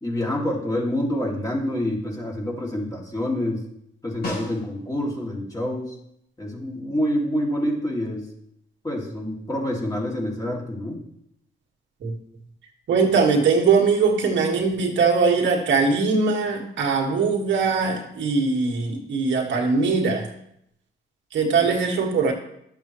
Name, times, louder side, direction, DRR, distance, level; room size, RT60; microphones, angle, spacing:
voice 1, 0.0-3.6 4.0-5.9 6.4-8.3 8.8-11.0 21.6-21.7, left 1 dB, 20° left, -2 dB, 2.5 m, -27 dB
Snare drum, 4.2-5.1 9.6-9.7, left 2 dB, 50° left, 3.1 m, -34 dB
voice 2, 12.9-20.3 21.3-22.3, right 4 dB, 70° right, 0 dB, 1.8 m, -21 dB
11.5 x 7.1 x 3.1 m, 0.75 s
cardioid pair, 90°, 20 cm